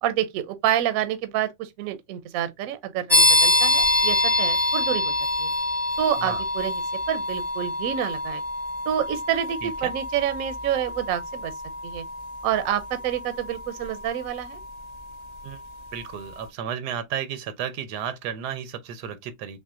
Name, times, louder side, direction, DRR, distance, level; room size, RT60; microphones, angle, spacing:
voice 1, 0.0-5.5 6.0-6.7 7.1-8.4 8.9-11.5 11.8-12.0 12.4-14.6, right 11 dB, 70° right, 1.0 m, -28 dB
sound 1, 3.1-15.6, left 1 dB, 30° left, 0.9 m, -26 dB
voice 2, 9.6-9.9 15.4-15.6 15.9-19.6, right 8 dB, 85° right, 1.2 m, -33 dB
6.1 x 2.2 x 2.4 m
omnidirectional pair, 1.7 m